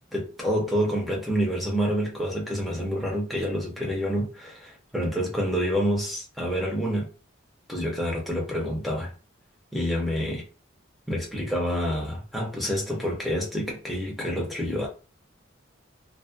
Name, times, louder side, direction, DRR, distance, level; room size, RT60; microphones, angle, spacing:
voice 1, 0.1-7.1 7.7-9.1 9.7-10.4 11.1-14.9, equal, ahead, 0.6 m, -28 dB
2.4 x 2.1 x 2.4 m
head